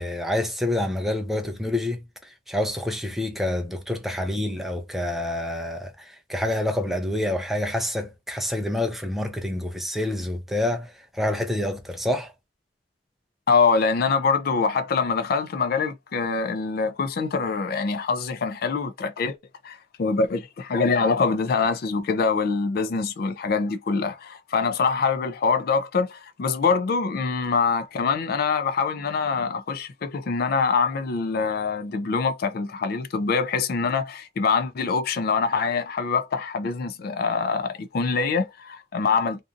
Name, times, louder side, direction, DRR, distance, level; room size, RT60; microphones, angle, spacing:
voice 1, 0.0-2.0 2.5-5.9 6.3-10.9 11.2-12.3, left 1 dB, ahead, 0.5 m, -27 dB
voice 2, 13.5-19.4 19.6-39.4, left 5 dB, 55° left, 0.4 m, -24 dB
2.6 x 2.4 x 2.4 m
head